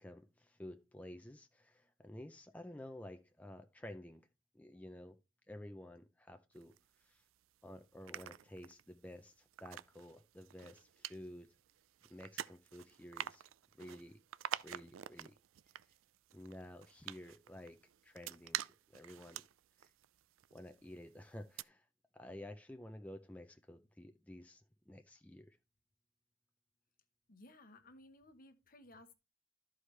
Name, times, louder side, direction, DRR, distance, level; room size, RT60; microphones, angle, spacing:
voice 1, 0.0-4.2 4.5-5.2 5.5-7.2 7.6-11.5 12.1-14.2 14.6-15.4 15.8-15.9 16.3-17.8 18.0-18.6 18.9-19.4 19.8-19.9 20.5-21.9 22.1-25.6, left 1 dB, 10° left, 0.4 m, -52 dB
sound 1, 6.6-7.4 7.8-21.0 21.4-21.6, right 11 dB, 90° right, 0.4 m, -48 dB
voice 2, 27.3-29.1, left 1 dB, 45° left, 1.0 m, -59 dB
13.0 x 4.9 x 3.2 m
head